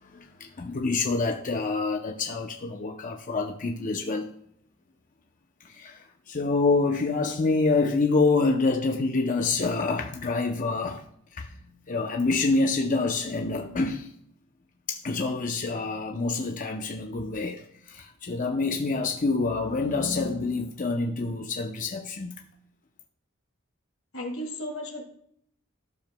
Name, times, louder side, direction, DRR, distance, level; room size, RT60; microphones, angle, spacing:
voice 1, 0.0-4.3 5.6-11.0 11.4-11.6 11.9-14.1 14.9-22.3, left 3 dB, 40° left, 0.6 m, -27 dB
voice 2, 24.1-25.0, left 1 dB, 90° left, 2.2 m, -34 dB
13.5 x 6.9 x 2.2 m
head